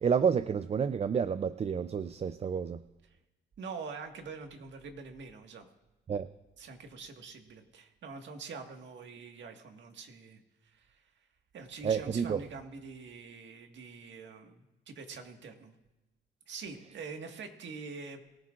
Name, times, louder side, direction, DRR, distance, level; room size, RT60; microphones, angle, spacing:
voice 1, 0.0-2.8 6.1-6.3 11.8-12.4, right 7 dB, 30° right, 13 dB, 0.4 m, -29 dB
voice 2, 3.6-5.7 6.6-11.0 11.5-15.7 16.5-18.2, right 4 dB, 65° right, 4 dB, 1.8 m, -45 dB
23.0 x 14.0 x 2.5 m, 1.0 s
cardioid pair, 90°, 20 cm